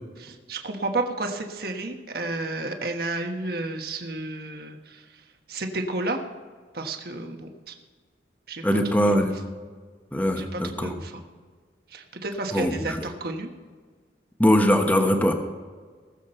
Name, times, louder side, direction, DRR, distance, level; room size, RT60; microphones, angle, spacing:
voice 1, 0.2-5.0 5.5-6.2 6.7-7.7 8.5-9.4 10.3-11.2 11.9-13.5, right 2 dB, 60° right, 4 dB, 1.4 m, -32 dB
voice 2, 8.6-9.3 10.1-10.9 12.5-13.0 14.4-15.3, equal, 10° left, 4 dB, 1.1 m, -21 dB
19.5 x 7.4 x 4.4 m, 1.5 s
head